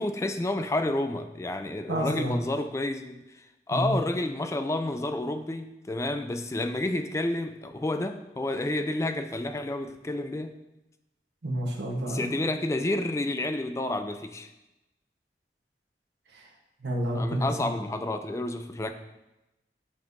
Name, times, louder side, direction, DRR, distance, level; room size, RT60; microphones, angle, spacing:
voice 1, 0.0-10.5 12.1-14.5 17.1-18.9, left 1 dB, 15° left, 7 dB, 0.3 m, -30 dB
voice 2, 1.9-2.3 3.7-4.0 11.4-12.4 16.3-16.5 16.8-17.7, right 1 dB, 75° right, 0 dB, 1.0 m, -30 dB
8.5 x 5.4 x 2.6 m, 0.97 s
head